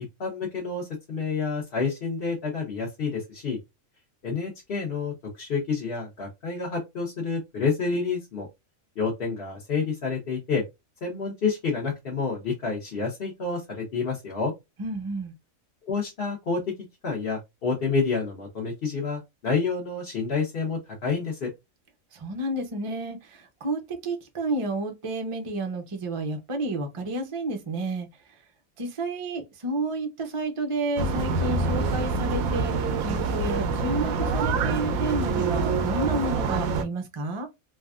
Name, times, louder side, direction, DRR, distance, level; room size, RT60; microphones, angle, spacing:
voice 1, 0.2-3.6 4.2-8.5 9.0-10.6 11.0-14.5 15.8-16.7 17.0-21.5, left 4 dB, 45° left, 1.0 m, -29 dB
voice 2, 14.8-15.3 22.1-28.1 28.8-37.5, right 2 dB, 35° right, 0.5 m, -31 dB
sound 1, 31.0-36.8, right 4 dB, 80° right, 1.0 m, -26 dB
3.3 x 2.3 x 2.3 m
omnidirectional pair, 1.5 m